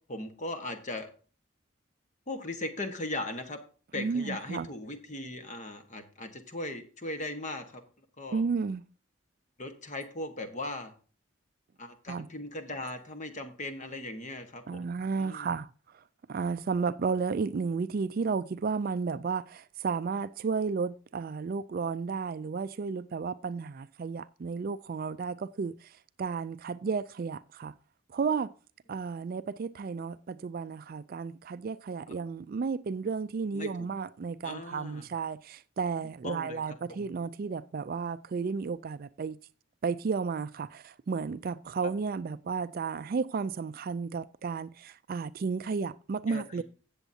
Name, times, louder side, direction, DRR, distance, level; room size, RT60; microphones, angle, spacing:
voice 1, 0.1-1.1 2.3-3.6 3.9-7.8 8.2-8.4 9.6-10.9 11.8-14.9 15.2-15.6 32.1-32.2 33.5-33.9 34.4-35.1 36.2-37.1 41.8-41.9 46.3-46.6, left 2 dB, 35° left, 1.3 m, -38 dB
voice 2, 3.9-4.7 8.3-8.9 12.1-12.3 14.7-16.0 16.3-27.7 28.1-28.5 28.9-39.4 39.8-46.6, right 5 dB, 45° right, 0.3 m, -33 dB
16.0 x 7.2 x 2.7 m
head